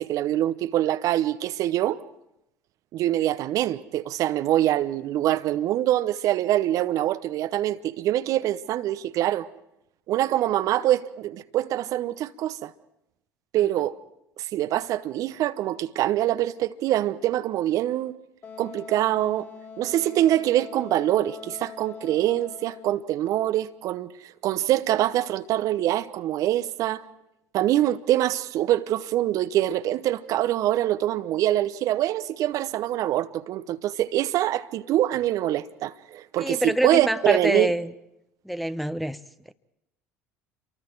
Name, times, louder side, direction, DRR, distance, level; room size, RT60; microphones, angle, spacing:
voice 1, 0.0-2.0 2.9-9.5 10.1-12.7 13.5-14.0 14.4-18.1 18.6-19.5 19.8-27.0 27.5-37.7, right 13 dB, 55° right, 0.8 m, -24 dB
Wind instrument woodwind instrument, 18.4-23.1, left 5 dB, 40° left, 5.3 m, -42 dB
voice 2, 36.4-37.9 38.4-39.2, equal, ahead, 0.9 m, -25 dB
28.0 x 23.5 x 4.6 m
hypercardioid pair, 65°, 7 cm